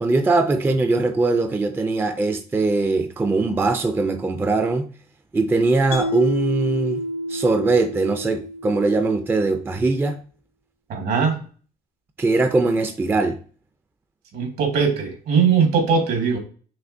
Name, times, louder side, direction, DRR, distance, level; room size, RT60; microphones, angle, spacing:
voice 1, 0.0-4.9 5.3-7.0 7.3-10.2 12.2-13.4, right 3 dB, 15° right, 0.4 m, -21 dB
Mallet percussion, 5.9-9.2, equal, 80° left, 0.9 m, -29 dB
voice 2, 10.9-11.4 14.3-16.4, right 6 dB, 70° right, 1.6 m, -20 dB
5.9 x 2.7 x 2.6 m
cardioid pair, 110°, 17 cm